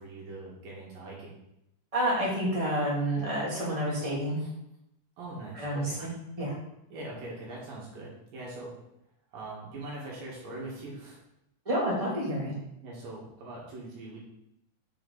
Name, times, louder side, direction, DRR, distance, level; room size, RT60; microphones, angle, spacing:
voice 1, 0.0-1.4 5.2-6.0 6.9-8.8 9.3-11.2 12.8-14.2, right 2 dB, 70° right, -4 dB, 3.3 m, -42 dB
voice 2, 1.9-4.4 5.5-6.5 11.6-12.5, right 1 dB, 15° right, -6 dB, 1.3 m, -29 dB
6.7 x 4.5 x 3.9 m, 0.83 s
omnidirectional pair, 4.1 m